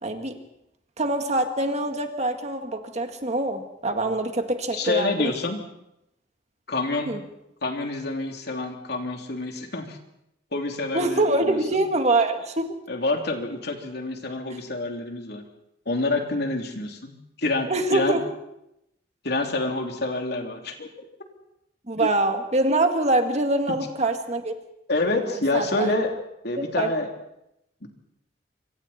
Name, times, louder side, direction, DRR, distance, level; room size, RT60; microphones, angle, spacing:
voice 1, 0.0-0.4 1.0-5.3 7.1-7.2 10.9-12.8 17.7-18.2 21.9-24.6 25.3-26.0 26.6-26.9, right 2 dB, 40° right, 6 dB, 1.9 m, -24 dB
voice 2, 4.7-5.6 6.7-7.1 7.6-10.0 10.5-11.6 12.9-15.4 15.8-17.1 17.4-18.2 19.2-20.9 22.0-22.1 24.9-26.2 26.4-27.1 27.8-27.9, left 2 dB, 60° left, 3 dB, 3.1 m, -27 dB
25.5 x 25.0 x 4.3 m, 0.83 s
head